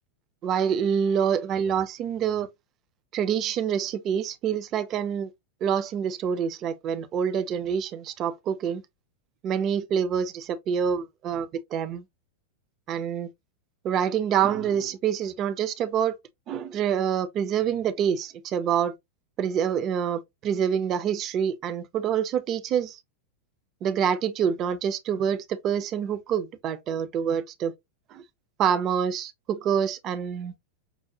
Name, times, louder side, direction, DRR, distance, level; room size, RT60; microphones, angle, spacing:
voice 1, 0.4-2.5 3.1-5.3 5.6-8.8 9.4-12.0 12.9-13.3 13.8-16.1 16.5-18.9 19.4-23.0 23.8-27.7 28.1-28.2 28.6-30.5, right 8 dB, 35° right, 0.4 m, -26 dB
5.9 x 2.1 x 2.7 m
figure-of-eight pair, 90°, 0 cm